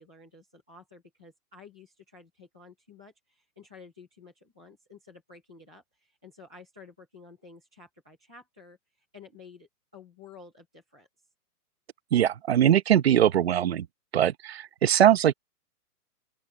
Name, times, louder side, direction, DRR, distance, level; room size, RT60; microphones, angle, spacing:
voice 1, 0.0-8.8 9.1-11.1, left 4 dB, 5° left, 0.5 m, -52 dB
voice 2, 12.1-13.9 14.1-15.3, right 10 dB, 40° right, 1.0 m, -21 dB
open air
hypercardioid pair, 170°, 47 cm